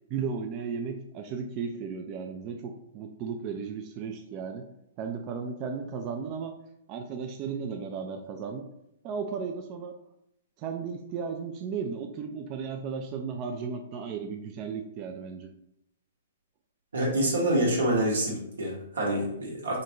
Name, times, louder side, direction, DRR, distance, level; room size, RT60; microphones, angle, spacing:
voice 1, 0.1-4.7 5.0-6.6 6.9-8.7 9.0-10.0 10.6-15.5, right 6 dB, 35° right, 4 dB, 0.3 m, -35 dB
voice 2, 16.9-19.8, right 1 dB, 85° right, -3 dB, 1.1 m, -27 dB
3.8 x 2.2 x 2.8 m, 0.77 s
hypercardioid pair, 125°, 0 cm